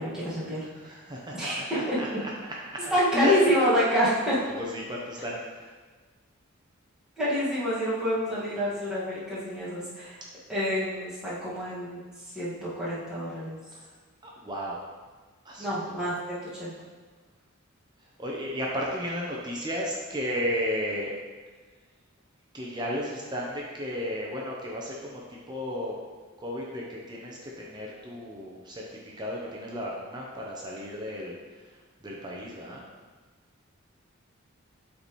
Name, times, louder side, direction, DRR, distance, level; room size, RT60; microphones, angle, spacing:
voice 1, 0.0-0.7 1.3-2.0 2.8-4.4 7.2-10.2 10.5-13.6 15.6-16.7, equal, 5° right, -11 dB, 1.8 m, -27 dB
voice 2, 0.7-2.8 3.1-3.4 4.6-5.7 13.7-13.9 14.2-14.8 15.4-16.1 18.2-21.2 22.5-26.0 26.4-28.8 29.2-31.4 32.0-32.8, equal, 20° right, -3 dB, 0.7 m, -34 dB
8.6 x 4.2 x 3.1 m, 1.4 s
head